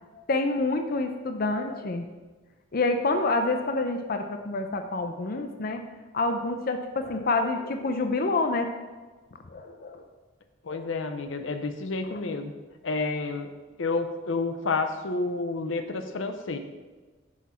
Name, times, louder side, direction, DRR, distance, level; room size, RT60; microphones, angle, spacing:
voice 1, 0.1-2.1 2.7-5.8 6.1-8.7 9.5-10.1 10.7-10.9 12.1-12.2, left 2 dB, 50° left, 6 dB, 0.6 m, -27 dB
voice 2, 10.6-12.5 12.8-13.5 13.8-16.6, left 3 dB, 85° left, 8 dB, 0.8 m, -30 dB
9.9 x 6.2 x 4.3 m, 1.3 s
head